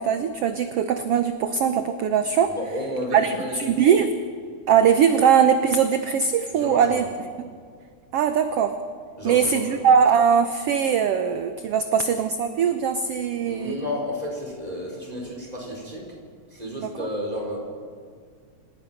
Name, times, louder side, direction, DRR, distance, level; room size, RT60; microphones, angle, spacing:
voice 1, 0.0-2.5 3.1-4.1 4.7-7.0 8.1-8.8 9.2-13.8 16.8-17.1, right 7 dB, 70° right, 8 dB, 1.5 m, -21 dB
voice 2, 2.4-3.8 6.5-7.1 9.2-9.8 13.4-16.1 16.5-17.6, equal, 10° right, -2 dB, 4.7 m, -32 dB
27.0 x 17.0 x 5.8 m, 2.1 s
omnidirectional pair, 3.6 m